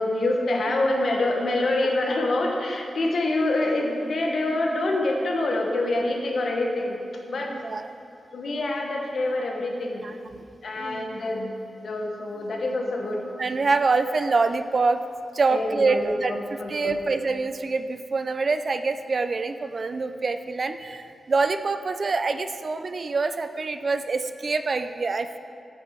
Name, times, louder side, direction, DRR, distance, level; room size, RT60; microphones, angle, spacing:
voice 1, 0.0-7.0 7.3-7.5 8.3-10.0 10.6-11.5 11.8-13.2 15.5-17.0, left 2 dB, 70° left, 1 dB, 1.1 m, -26 dB
voice 2, 7.5-7.9 10.0-10.4 10.8-11.2 13.4-15.0 15.3-16.3 16.7-25.4, right 4 dB, 50° right, 9 dB, 0.4 m, -25 dB
9.5 x 6.0 x 4.5 m, 2.4 s
cardioid pair, 80°, 0 cm